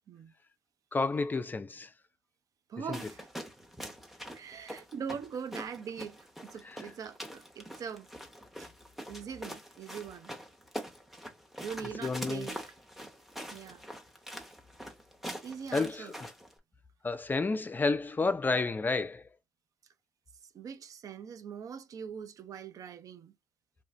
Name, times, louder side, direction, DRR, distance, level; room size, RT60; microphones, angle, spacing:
voice 1, 0.9-1.9 2.9-3.0 12.0-12.5 15.7-16.3 17.0-19.2, left 3 dB, 25° left, 0.4 m, -30 dB
voice 2, 2.7-3.3 4.3-8.1 8.6-8.7 9.1-10.3 11.6-12.6 13.5-13.8 15.4-16.1 20.5-23.3, right 7 dB, 55° right, 0.4 m, -42 dB
sound 1, 2.9-16.5, equal, ahead, 0.8 m, -44 dB
2.4 x 2.4 x 3.1 m
hypercardioid pair, 45°, 7 cm